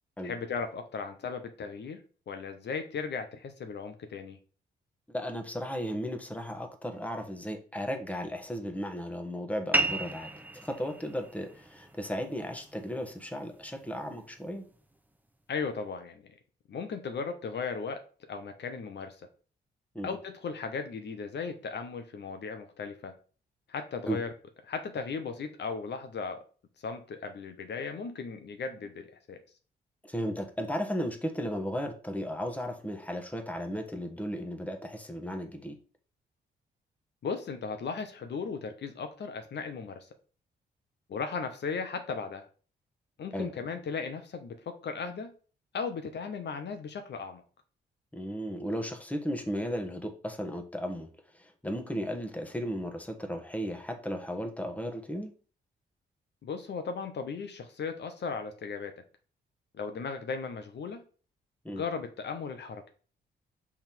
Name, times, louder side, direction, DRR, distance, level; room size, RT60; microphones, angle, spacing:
voice 1, 0.2-4.4 15.5-16.3 16.7-19.2 20.0-23.1 23.7-24.3 24.6-26.4 26.8-29.4 37.2-40.1 41.1-42.5 43.2-45.3 45.7-47.4 56.4-59.0 59.7-61.0 61.7-62.8, left 5 dB, 60° left, 0.9 m, -36 dB
voice 2, 5.1-10.3 10.6-14.7 19.9-20.1 24.1-24.2 30.1-35.8 43.3-43.5 48.1-51.1 51.3-55.3 61.6-61.8, equal, 5° left, 1.3 m, -35 dB
sound 1, 9.7-14.8, right 2 dB, 10° right, 0.8 m, -35 dB
5.7 x 3.6 x 4.5 m
cardioid pair, 60°, 20 cm